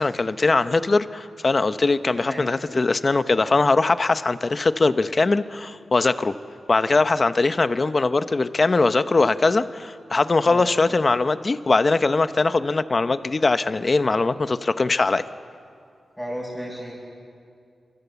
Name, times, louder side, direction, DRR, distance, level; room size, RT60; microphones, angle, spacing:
voice 1, 0.0-6.3 6.7-15.2, left 3 dB, 35° left, 11 dB, 0.8 m, -21 dB
voice 2, 16.2-16.9, equal, ahead, -8 dB, 6.6 m, -33 dB
28.0 x 25.5 x 8.2 m, 2.4 s
wide cardioid pair, 135°, 0 cm